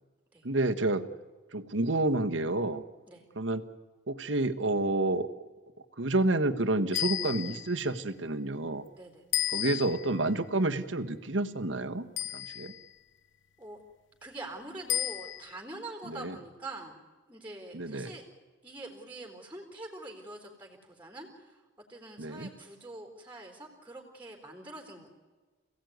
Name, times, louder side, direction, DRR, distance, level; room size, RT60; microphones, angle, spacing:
voice 1, 0.4-1.0 1.5-2.8 3.3-3.6 4.1-5.3 6.0-8.8 9.5-12.1 12.3-12.7 16.1-16.4 17.7-18.1 22.2-22.5, right 2 dB, 80° right, 9 dB, 1.5 m, -29 dB
sound 1, 6.9-7.8 9.3-10.2 12.2-12.9 14.9-15.6, left 12 dB, 75° left, 0.7 m, -33 dB
voice 2, 14.2-17.0 17.3-18.2 18.6-21.6 21.9-25.1, right 2 dB, 10° right, 3 dB, 3.9 m, -44 dB
27.5 x 17.0 x 9.5 m, 1.4 s
head